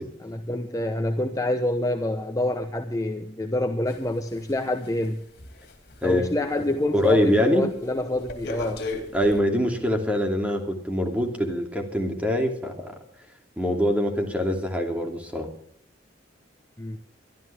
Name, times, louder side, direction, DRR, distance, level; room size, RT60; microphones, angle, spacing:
voice 1, 0.2-5.2 6.0-8.8 16.8-17.0, left 1 dB, 20° left, 6 dB, 0.9 m, -27 dB
sound 1, 3.9-6.7 7.0-7.3 7.7-9.4, left 2 dB, 60° left, 3.3 m, -37 dB
voice 2, 6.9-7.7 9.1-12.9 13.6-15.5, equal, 10° right, 3 dB, 2.7 m, -24 dB
22.5 x 13.0 x 3.5 m, 0.65 s
head